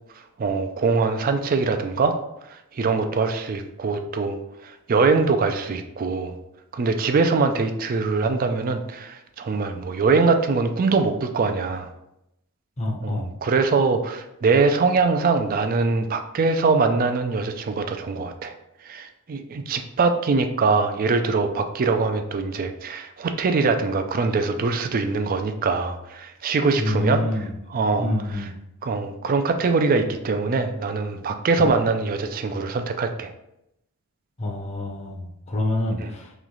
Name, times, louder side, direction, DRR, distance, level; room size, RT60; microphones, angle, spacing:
voice 1, 0.4-2.1 2.7-4.4 4.6-6.4 6.7-11.9 13.0-18.5 18.8-27.2 27.7-28.1 28.8-33.3 36.0-36.1, right 4 dB, 40° right, 7 dB, 0.3 m, -23 dB
voice 2, 12.8-13.3 26.8-27.5 28.0-28.5 31.6-31.7 34.4-36.3, left 1 dB, 30° left, -1 dB, 0.7 m, -27 dB
3.1 x 3.1 x 3.7 m, 0.84 s
head